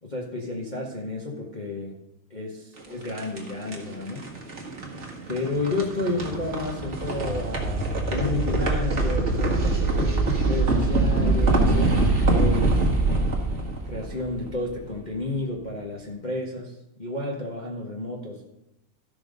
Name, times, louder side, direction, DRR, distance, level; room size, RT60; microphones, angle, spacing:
voice 1, 0.0-1.9 2.3-4.3 5.3-12.9 13.8-18.4, left 2 dB, 25° left, -2 dB, 1.2 m, -31 dB
sound 1, 2.8-14.9, right 2 dB, 35° right, 1.8 m, -24 dB
13.0 x 5.9 x 5.3 m, 0.88 s
omnidirectional pair, 2.3 m